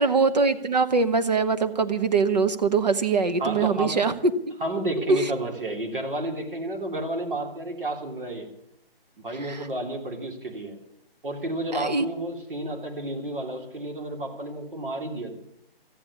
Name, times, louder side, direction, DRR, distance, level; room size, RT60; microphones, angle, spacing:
voice 1, 0.0-4.1 5.1-5.3 9.5-9.6 11.7-12.0, right 4 dB, 45° right, 9 dB, 1.0 m, -22 dB
voice 2, 3.4-4.1 4.6-8.5 9.2-10.8 11.2-15.3, right 1 dB, 60° right, 2 dB, 3.2 m, -31 dB
14.0 x 10.0 x 8.4 m, 0.80 s
hypercardioid pair, 175°, 30 cm